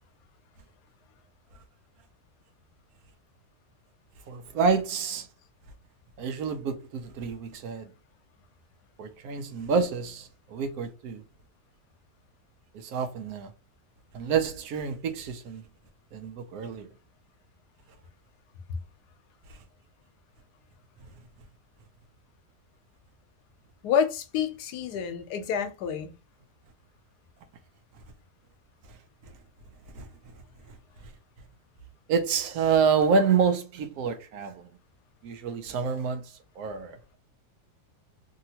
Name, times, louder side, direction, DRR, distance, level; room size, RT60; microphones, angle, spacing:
voice 1, 4.3-5.3 6.2-7.9 9.0-11.2 12.7-13.5 14.1-15.6 16.1-16.9 19.5-19.6 29.9-30.3 32.1-34.6 35.2-37.2, right 5 dB, 75° right, 1.0 m, -28 dB
voice 2, 23.8-26.1, left 7 dB, 85° left, 1.2 m, -28 dB
2.8 x 2.8 x 2.7 m
omnidirectional pair, 1.7 m